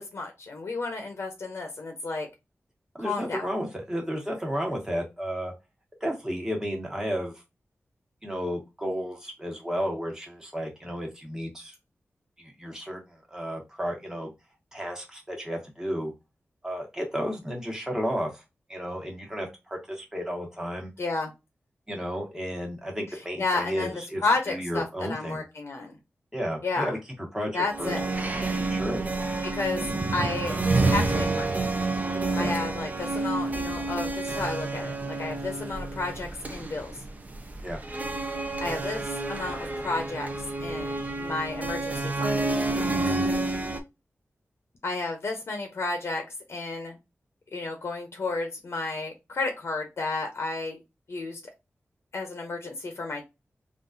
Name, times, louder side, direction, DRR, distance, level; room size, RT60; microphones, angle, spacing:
voice 1, 0.0-2.3 3.0-3.5 21.0-21.3 23.1-26.0 26.6-26.9 27.5-28.1 29.4-29.8 30.1-31.6 32.4-37.0 38.6-42.4 44.8-46.2 46.5-47.0 47.5-50.8 51.1-51.4 52.1-53.3, left 3 dB, 65° left, 4 dB, 0.7 m, -32 dB
voice 2, 3.0-5.5 6.0-7.3 8.2-11.7 12.4-14.3 14.7-16.1 16.6-18.4 18.7-20.9 21.9-24.2 24.5-25.4 26.3-27.0 27.3-27.9 28.7-29.0 32.3-32.5 37.6-37.8 42.9-43.2, equal, 10° right, 0 dB, 1.2 m, -32 dB
sound 1, 27.7-43.8, right 2 dB, 35° right, 0.6 m, -29 dB
3.7 x 2.5 x 2.6 m, 0.24 s
wide cardioid pair, 125°, 5 cm